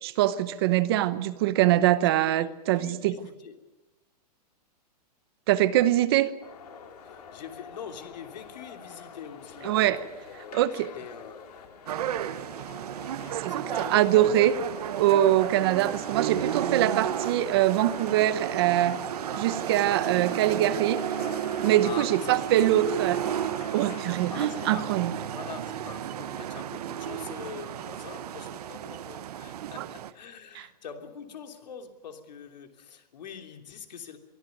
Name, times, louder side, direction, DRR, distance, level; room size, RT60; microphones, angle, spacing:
voice 1, 0.0-3.2 5.5-6.3 9.6-10.0 10.5-10.9 13.4-14.5 15.0-19.0 19.4-21.0 21.6-23.2 23.7-25.1 29.6-29.9 30.5-30.7, right 13 dB, 35° right, 0.9 m, -23 dB
voice 2, 2.8-3.6 7.0-11.5 13.5-14.3 19.9-20.7 21.8-22.7 24.3-25.0 25.3-34.2, left 7 dB, 80° left, 3.2 m, -44 dB
sound 1, 6.4-25.0, left 6 dB, 65° left, 3.8 m, -46 dB
sound 2, 11.9-30.1, right 10 dB, 65° right, 1.2 m, -33 dB
22.5 x 14.5 x 9.3 m
hypercardioid pair, 170°, 21 cm